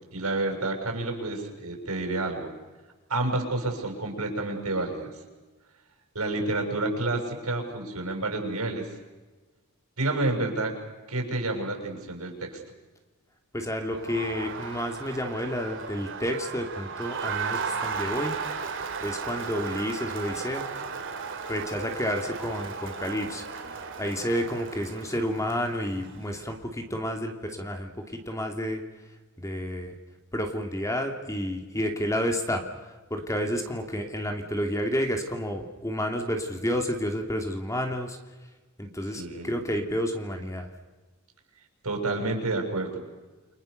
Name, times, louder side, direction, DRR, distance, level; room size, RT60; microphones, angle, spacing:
voice 1, 0.1-2.5 3.1-5.1 6.2-8.9 10.0-10.7 11.1-12.6 39.2-39.5 41.8-43.0, right 2 dB, 75° right, 3 dB, 7.0 m, -29 dB
voice 2, 13.5-18.4 19.0-20.7 21.5-23.5 23.7-28.8 29.4-29.9 30.3-38.2 38.8-40.7, equal, 15° left, 4 dB, 2.8 m, -30 dB
Crowd, 13.8-26.3, right 5 dB, 60° right, 2.9 m, -35 dB
29.0 x 24.5 x 6.7 m, 1.2 s
head